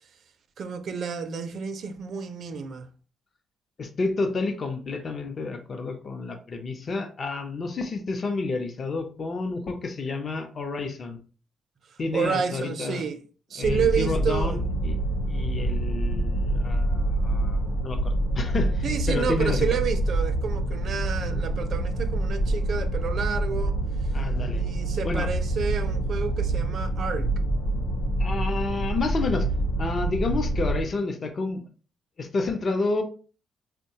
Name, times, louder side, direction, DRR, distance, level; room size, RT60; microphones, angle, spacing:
voice 1, 0.6-2.9 12.1-13.2 13.5-14.6 18.8-23.8 24.5-27.3, right 6 dB, 60° right, 0.4 m, -30 dB
voice 2, 3.8-11.2 12.0-13.0 13.6-15.0 15.2-19.7 24.1-24.6 25.0-25.3 28.2-29.5 29.8-31.6 32.2-33.0, left 3 dB, 45° left, 0.6 m, -30 dB
sound 1, 13.6-30.8, right 1 dB, 85° left, 0.7 m, -26 dB
3.6 x 2.2 x 2.8 m
cardioid pair, 90°, 0 cm